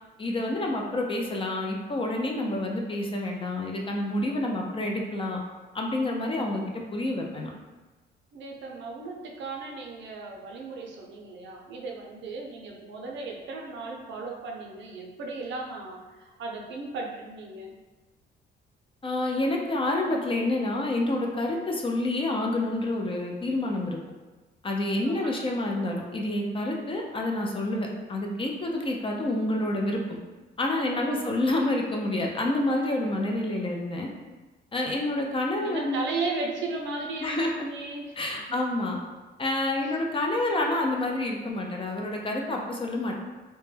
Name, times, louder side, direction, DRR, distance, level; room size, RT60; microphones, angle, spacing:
voice 1, 0.2-5.4 5.7-7.5 19.0-24.0 24.6-30.2 30.6-34.1 34.7-36.0 37.2-37.7 38.2-39.0 39.4-43.1, left 1 dB, 25° left, 1 dB, 0.4 m, -28 dB
voice 2, 8.3-17.7 25.0-25.5 31.0-31.3 35.6-38.6 39.8-39.9, right 3 dB, 70° right, 0 dB, 0.5 m, -36 dB
2.1 x 2.1 x 3.1 m, 1.2 s
cardioid pair, 90°, 20 cm